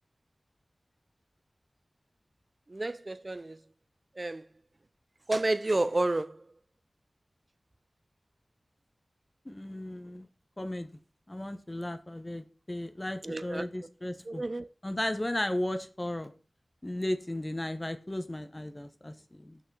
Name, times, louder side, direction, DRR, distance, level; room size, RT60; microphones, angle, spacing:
voice 1, 2.7-3.6 4.2-4.4 5.3-6.4 13.2-13.7 14.3-14.7, right 2 dB, 40° right, 0.4 m, -30 dB
voice 2, 9.4-10.3 10.6-10.9 11.3-14.4 14.8-16.3 16.8-19.6, left 1 dB, 25° left, 0.9 m, -35 dB
6.4 x 5.7 x 6.1 m
wide cardioid pair, 60°, 0 cm